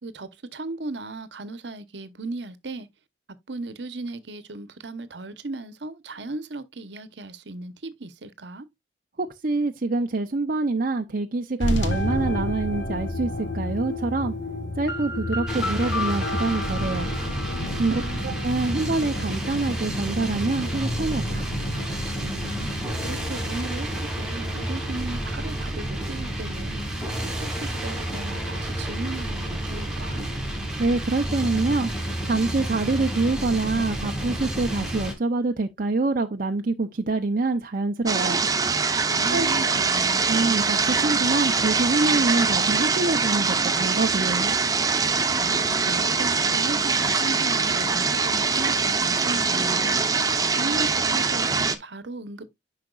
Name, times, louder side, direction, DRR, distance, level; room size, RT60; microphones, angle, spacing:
voice 1, 0.0-2.9 3.5-8.7 17.9-18.3 18.6-18.7 22.2-22.7 23.0-26.9 27.2-30.3 39.1-40.3 45.3-49.9 50.6-52.5, right 2 dB, 70° right, 1.0 m, -36 dB
voice 2, 9.2-14.3 14.8-17.1 17.7-17.9 18.2-21.5 30.8-31.9 32.2-38.5 39.3-39.5 40.3-44.5, right 3 dB, 50° right, 0.7 m, -25 dB
sound 1, 11.6-23.6, left 1 dB, 85° left, 1.3 m, -31 dB
sound 2, 15.5-35.1, right 1 dB, 5° right, 2.5 m, -30 dB
sound 3, 38.1-51.8, right 4 dB, 20° right, 0.8 m, -23 dB
10.0 x 5.8 x 2.4 m
head